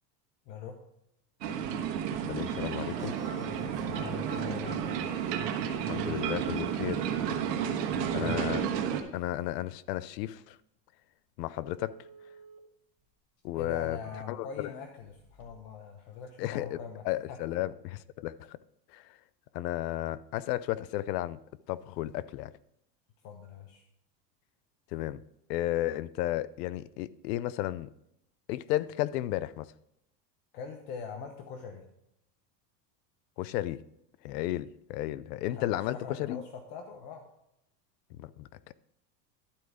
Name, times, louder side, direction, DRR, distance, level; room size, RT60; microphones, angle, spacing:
voice 1, 0.5-0.8 3.3-4.8 6.5-6.6 7.9-8.4 13.5-17.4 23.2-23.8 30.5-31.8 35.5-37.3, left 6 dB, 65° left, 1.2 m, -42 dB
sound 1, 1.4-9.0, right 8 dB, 85° right, 1.3 m, -32 dB
voice 2, 2.3-3.1 5.7-7.0 8.1-8.6 9.1-10.6 11.4-12.0 13.4-14.0 14.3-14.7 16.4-16.8 17.0-18.6 18.9-19.2 19.5-21.4 21.7-22.5 24.9-25.2 25.5-27.9 28.5-29.7 33.4-33.8 34.2-36.4 38.2-38.7, left 15 dB, 80° left, 0.6 m, -33 dB
sound 2, 2.9-10.4, right 3 dB, 10° right, 2.5 m, -53 dB
sound 3, 3.2-3.4 3.8-4.8 5.8-5.9 6.6-7.6 11.6-12.6 13.0-13.1 13.7-14.6 15.0-15.7 16.0-16.6, right 2 dB, 30° right, 1.9 m, -51 dB
12.0 x 4.7 x 4.9 m
supercardioid pair, 115°, 48 cm